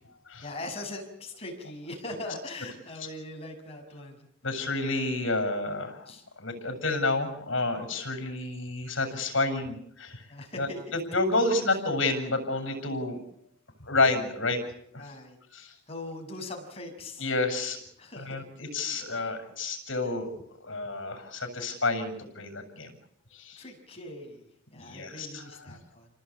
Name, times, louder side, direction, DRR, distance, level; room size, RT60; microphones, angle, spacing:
voice 1, 0.4-4.2 6.1-6.2 10.3-11.0 15.0-15.4 15.9-17.3 18.0-18.4 19.0-19.3 23.6-26.1, left 2 dB, 30° left, 2 dB, 6.6 m, -41 dB
voice 2, 4.4-6.1 6.4-10.3 10.6-10.7 11.1-13.2 13.8-14.6 14.9-15.0 15.5-15.7 17.2-17.8 18.2-20.3 20.6-22.9 23.3-23.6 24.8-25.4, left 2 dB, 70° left, 6 dB, 7.2 m, -29 dB
29.5 x 19.5 x 8.7 m, 0.71 s
head